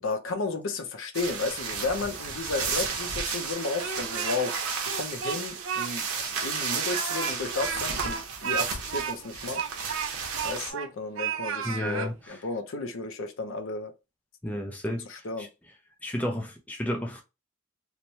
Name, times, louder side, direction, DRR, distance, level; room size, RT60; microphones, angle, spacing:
voice 1, 0.0-4.5 4.9-6.1 6.4-9.6 10.4-13.9 15.1-15.5, left 3 dB, 65° left, 0.5 m, -33 dB
sound 1, 1.1-10.7, right 5 dB, 90° right, 0.8 m, -33 dB
Speech, 3.6-4.5 4.8-5.9 6.2-6.3 6.8-10.9 11.2-12.1, right 7 dB, 65° right, 0.4 m, -33 dB
voice 2, 11.6-12.4 14.4-15.1 15.4-15.5 16.0-17.2, equal, 5° left, 0.3 m, -32 dB
3.0 x 2.1 x 2.6 m
head